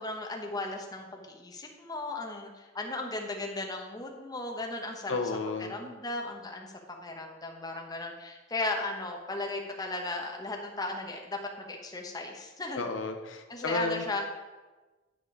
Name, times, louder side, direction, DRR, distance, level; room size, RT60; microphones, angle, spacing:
voice 1, 0.0-5.2 5.6-6.7 7.0-12.9 13.5-14.3, left 2 dB, 20° left, 1 dB, 0.9 m, -36 dB
voice 2, 5.1-5.7 12.7-14.0, left 3 dB, 80° left, 6 dB, 0.8 m, -32 dB
9.6 x 5.1 x 4.8 m, 1.2 s
head